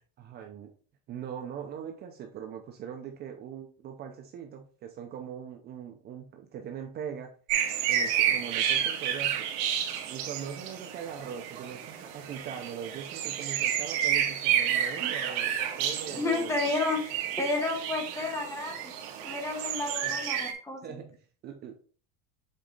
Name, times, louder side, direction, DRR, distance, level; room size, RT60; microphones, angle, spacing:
voice 1, 0.2-0.7 1.1-7.3 7.9-9.5 10.1-16.6 20.0-20.1 20.8-21.8, right 8 dB, 30° right, 4 dB, 0.6 m, -41 dB
sound 1, 7.5-20.5, right 9 dB, 60° right, 1.6 m, -30 dB
voice 2, 16.2-18.9 19.2-21.0, left 2 dB, 10° left, 2 dB, 1.4 m, -31 dB
7.5 x 4.0 x 3.8 m, 0.43 s
cardioid pair, 165°, 31 cm